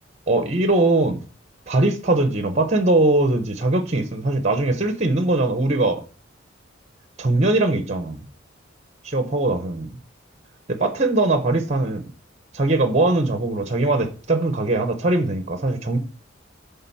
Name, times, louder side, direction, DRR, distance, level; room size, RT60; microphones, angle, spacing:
voice 1, 0.3-1.2 1.7-6.0 7.2-8.2 9.0-9.9 10.7-12.0 12.5-16.0, right 2 dB, 35° right, 1.0 m, -21 dB
9.0 x 3.6 x 5.6 m
head